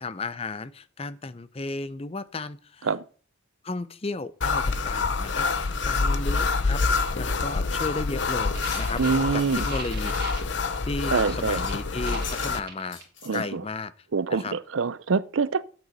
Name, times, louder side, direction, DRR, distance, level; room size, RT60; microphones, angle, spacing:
voice 1, 0.0-2.9 3.6-9.0 9.3-10.3 10.8-13.0 13.3-13.9 14.3-14.5, left 3 dB, 30° left, 0.6 m, -34 dB
sound 1, 4.4-12.6, left 4 dB, 60° left, 0.8 m, -27 dB
sound 2, 8.4-10.6 11.3-13.0, right 6 dB, 50° right, 2.3 m, -41 dB
sound 3, 8.7-9.6 9.9-10.1 10.6-10.7 11.0-11.1 11.4-11.8 12.1-12.5 12.8-13.5, left 5 dB, 75° left, 3.7 m, -41 dB
voice 2, 9.0-9.7 11.1-11.6 13.2-13.6 14.1-15.6, right 5 dB, 80° right, 0.6 m, -25 dB
9.2 x 8.0 x 5.4 m
head